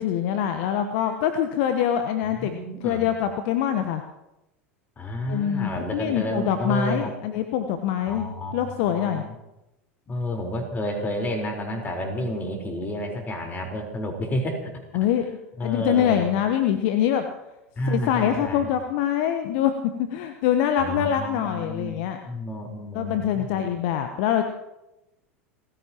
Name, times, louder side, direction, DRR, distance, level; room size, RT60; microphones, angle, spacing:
voice 1, 0.0-2.5 2.8-4.0 5.3-8.3 8.5-9.2 14.9-15.3 15.6-17.2 17.9-19.7 20.0-22.2 22.9-24.4, left 9 dB, 55° left, 7 dB, 1.1 m, -24 dB
voice 2, 2.2-3.1 5.0-7.1 8.1-9.3 10.1-14.7 15.6-16.3 17.8-18.6 20.8-23.7, equal, 25° left, 3 dB, 4.3 m, -30 dB
30.0 x 15.0 x 3.0 m, 0.92 s
figure-of-eight pair, 80°, 8 cm